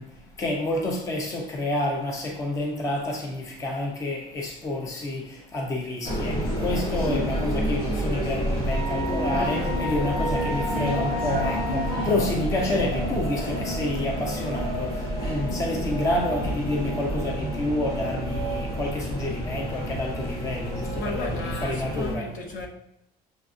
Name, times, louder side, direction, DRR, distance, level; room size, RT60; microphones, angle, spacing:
voice 1, 0.0-22.3, left 1 dB, 20° left, 0.5 m, -29 dB
sound 1, 6.0-22.1, equal, 75° left, 1.3 m, -29 dB
Wind instrument woodwind instrument, 8.7-12.2, right 1 dB, 40° left, 1.2 m, -34 dB
voice 2, 20.9-22.7, left 2 dB, 55° left, 0.7 m, -34 dB
6.7 x 2.3 x 2.5 m
cardioid pair, 175°, 17 cm